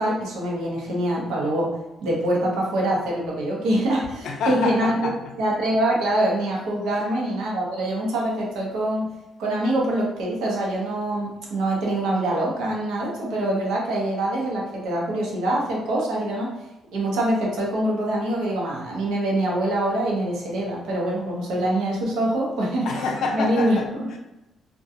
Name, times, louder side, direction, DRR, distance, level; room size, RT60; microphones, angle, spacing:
voice 1, 0.0-1.7 2.0-5.0 5.4-9.1 9.4-16.5 16.9-22.9 23.3-24.1, right 1 dB, 90° right, -3 dB, 0.7 m, -24 dB
voice 2, 4.2-5.1 22.8-23.9 24.1-24.2, left 3 dB, 75° left, 2 dB, 0.4 m, -27 dB
2.4 x 2.2 x 2.7 m, 0.95 s
cardioid pair, 90°, 0 cm